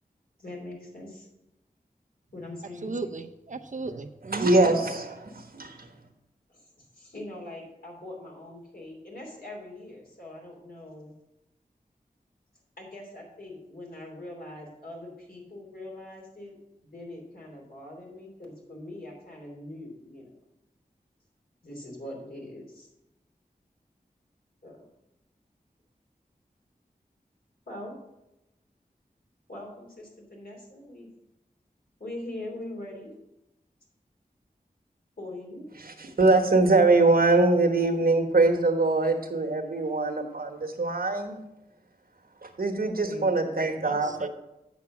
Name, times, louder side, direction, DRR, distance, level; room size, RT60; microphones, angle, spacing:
voice 1, 0.4-1.3 2.3-2.9 6.5-6.6 6.9-11.1 12.8-16.6 16.9-20.3 21.6-22.9 24.6-24.9 27.7-27.9 29.5-31.1 32.0-33.1 35.2-35.6 43.0-43.9, left 1 dB, 70° left, -2 dB, 3.1 m, -42 dB
voice 2, 2.8-4.5 43.8-44.3, right 3 dB, 55° right, 8 dB, 0.6 m, -36 dB
voice 3, 4.3-5.9 35.8-41.3 42.4-44.3, right 2 dB, 70° right, 4 dB, 1.3 m, -23 dB
8.3 x 5.9 x 6.0 m, 0.92 s
wide cardioid pair, 45°, 16 cm